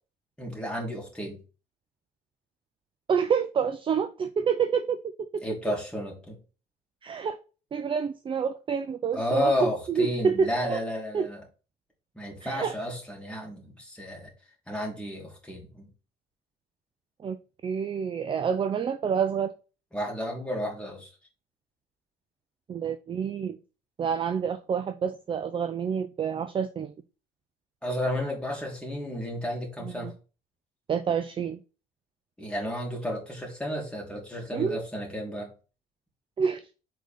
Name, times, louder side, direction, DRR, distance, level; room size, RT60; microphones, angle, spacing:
voice 1, 0.4-1.4 5.4-6.4 9.1-11.4 12.1-14.3 14.7-15.9 19.9-21.1 27.8-30.1 32.4-35.5, left 1 dB, 5° left, -1 dB, 2.7 m, -32 dB
voice 2, 3.1-5.0 7.0-7.4 7.7-10.8 11.1-11.3 12.4-12.7 17.2-17.4 17.6-19.5 22.7-23.6 24.0-26.9 29.8-30.1 30.9-31.6 34.5-34.8 36.4-36.6, right 6 dB, 30° right, 9 dB, 0.5 m, -28 dB
5.1 x 3.9 x 5.0 m, 0.34 s
cardioid pair, 110°, 17 cm